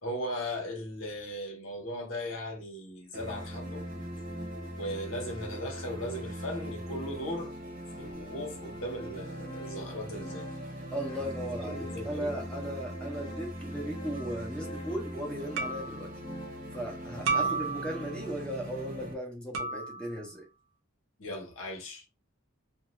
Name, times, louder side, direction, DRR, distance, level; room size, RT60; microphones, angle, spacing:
voice 1, 0.0-3.9 4.8-7.5 8.0-10.5 11.6-12.4 17.3-17.6 21.2-22.1, equal, 90° left, 1.0 m, -38 dB
sound 1, 3.1-19.1, equal, 40° right, 0.9 m, -41 dB
Organ, 8.5-18.4, equal, 20° left, 0.5 m, -48 dB
voice 2, 10.9-16.1 16.7-20.4, right 1 dB, 5° left, 0.9 m, -37 dB
sound 2, 14.1-14.4 15.6-16.1 17.3-18.1 19.5-20.2, right 4 dB, 75° right, 0.6 m, -32 dB
2.7 x 2.4 x 3.0 m
head